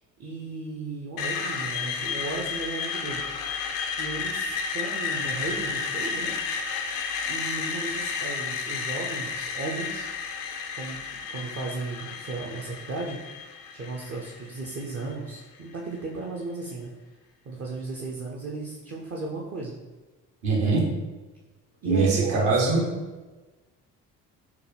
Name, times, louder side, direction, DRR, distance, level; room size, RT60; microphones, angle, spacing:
voice 1, 0.2-3.2 4.0-6.4 7.3-10.1 10.7-11.0 11.3-13.4 13.7-16.9 17.5-19.8 21.8-22.8, right 3 dB, 30° right, -2 dB, 0.6 m, -35 dB
Screech, 1.2-15.1, left 5 dB, 75° left, 0.5 m, -32 dB
voice 2, 20.4-20.9 21.8-22.8, right 3 dB, 60° right, -3 dB, 1.1 m, -22 dB
4.5 x 2.2 x 3.3 m, 1.2 s
figure-of-eight pair, 50°, 48 cm